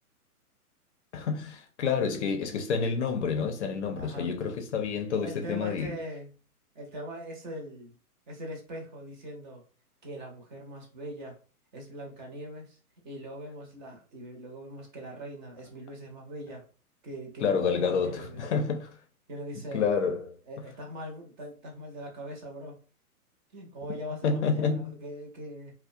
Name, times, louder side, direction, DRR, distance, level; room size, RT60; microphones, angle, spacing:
voice 1, 1.1-6.0 17.4-19.0 19.7-20.4 24.2-24.9, left 5 dB, 50° left, 0.5 m, -28 dB
voice 2, 3.9-4.3 5.2-6.3 6.7-8.0 8.3-9.6 10.0-11.4 11.7-12.8 13.0-16.6 17.0-18.4 19.3-19.9 20.5-22.8 23.5-25.7, equal, 30° right, 0.6 m, -41 dB
2.2 x 2.1 x 2.6 m
hypercardioid pair, 130°, 46 cm